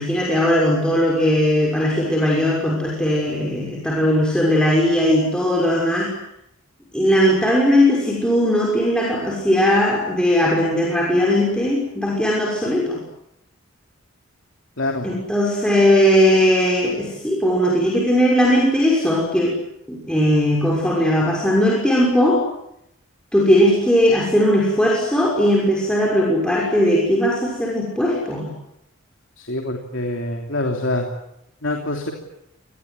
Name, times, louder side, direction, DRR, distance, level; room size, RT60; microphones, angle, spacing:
voice 1, 0.0-6.1 6.9-13.0 15.0-19.6 19.9-22.4 23.3-28.5, equal, 5° left, -3 dB, 6.1 m, -18 dB
voice 2, 14.8-15.1 29.4-31.0 31.6-32.1, left 1 dB, 65° left, 2 dB, 3.2 m, -25 dB
27.0 x 20.5 x 9.6 m, 0.81 s
head